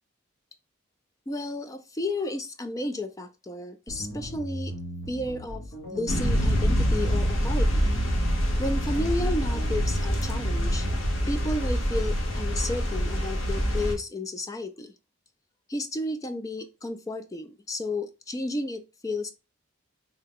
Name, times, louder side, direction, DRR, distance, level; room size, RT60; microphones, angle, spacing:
voice 1, 1.3-4.7 5.1-5.6 5.9-7.8 8.6-10.9 11.3-14.9 15.7-19.3, left 1 dB, 15° left, 0.3 m, -32 dB
sound 1, 3.9-11.3, equal, 50° left, 1.0 m, -37 dB
sound 2, 6.1-13.9, equal, 75° left, 1.1 m, -25 dB
3.7 x 2.2 x 3.4 m
head